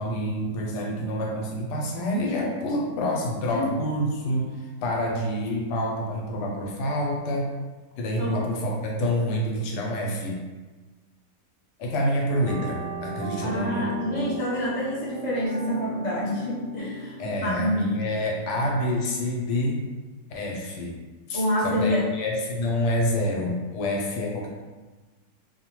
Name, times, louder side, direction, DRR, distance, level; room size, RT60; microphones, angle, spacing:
voice 1, 0.0-7.5 8.0-10.4 11.8-13.9 17.2-19.9 20.3-21.0 21.3-24.5, equal, 80° left, -1 dB, 1.1 m, -27 dB
sound 1, 12.3-17.9, right 3 dB, 60° right, 0.8 m, -37 dB
voice 2, 13.4-18.0 21.3-22.0, left 1 dB, 45° left, -8 dB, 0.4 m, -27 dB
2.7 x 2.1 x 2.9 m, 1.3 s
omnidirectional pair, 1.8 m